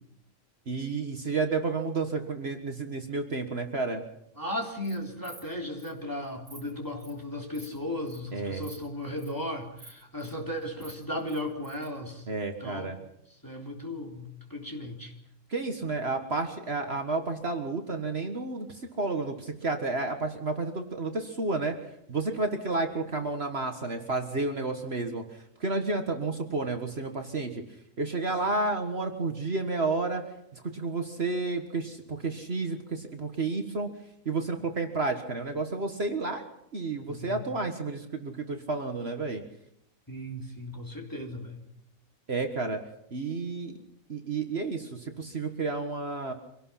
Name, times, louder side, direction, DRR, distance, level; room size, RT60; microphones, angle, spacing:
voice 1, 0.7-4.0 8.3-8.6 12.3-13.0 15.5-21.8 22.1-27.6 28.0-30.2 30.5-33.9 34.3-39.4 42.3-42.8 43.1-43.8 44.1-46.3, right 3 dB, 50° right, 5 dB, 1.8 m, -31 dB
voice 2, 4.4-12.3 12.6-13.1 13.4-15.1 37.1-37.4 40.1-41.6, left 1 dB, 15° left, 0 dB, 3.5 m, -36 dB
Insect, 4.6-5.0 5.2-5.5 5.8-5.9 6.2-6.6 7.0-7.2 7.5-7.7 8.1-8.2 8.6-8.8 9.0-9.3 9.8-10.3 10.6-11.9, right 2 dB, 80° right, 7.5 m, -49 dB
25.0 x 18.0 x 5.8 m, 0.76 s
omnidirectional pair, 1.4 m